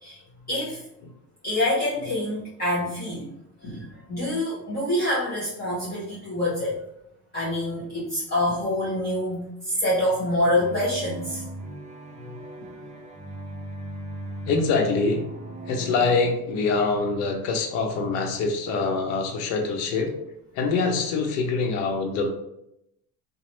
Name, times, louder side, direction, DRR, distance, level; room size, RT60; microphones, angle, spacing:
voice 1, 0.5-0.8 1.4-3.3 3.6-6.8 7.3-11.4 12.6-12.7, left 1 dB, 25° left, -9 dB, 1.3 m, -26 dB
sound 1, 10.6-16.3, right 2 dB, 20° right, 0.4 m, -38 dB
voice 2, 14.4-15.3 15.7-20.1 20.5-22.3, left 4 dB, 80° left, 3 dB, 0.7 m, -24 dB
3.0 x 2.0 x 3.0 m, 0.81 s
supercardioid pair, 105°, 39 cm